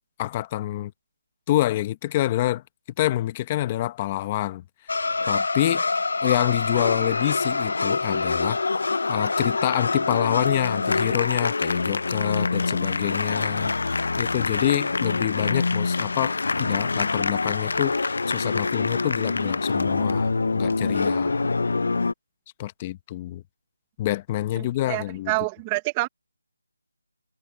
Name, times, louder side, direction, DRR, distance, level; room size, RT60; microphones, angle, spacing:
voice 1, 0.2-0.9 1.5-2.6 3.0-4.6 5.3-5.8 6.2-8.6 9.1-21.4 22.6-23.4 24.0-25.3, left 14 dB, 20° left, 1.0 m, -27 dB
sound 1, 4.9-22.1, left 3 dB, 60° left, 0.5 m, -25 dB
voice 2, 24.6-26.1, right 23 dB, 15° right, 0.9 m, -27 dB
figure-of-eight pair, 170°, 0 cm